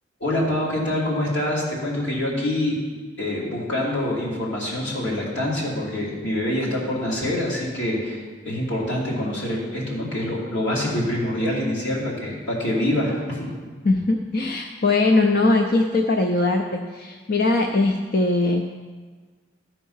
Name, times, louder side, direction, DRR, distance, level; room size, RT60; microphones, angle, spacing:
voice 1, 0.2-2.8 3.2-13.5, left 1 dB, 85° left, -5 dB, 2.9 m, -25 dB
voice 2, 13.8-18.6, left 2 dB, 50° left, 2 dB, 0.5 m, -21 dB
13.0 x 4.6 x 5.6 m, 1.5 s
head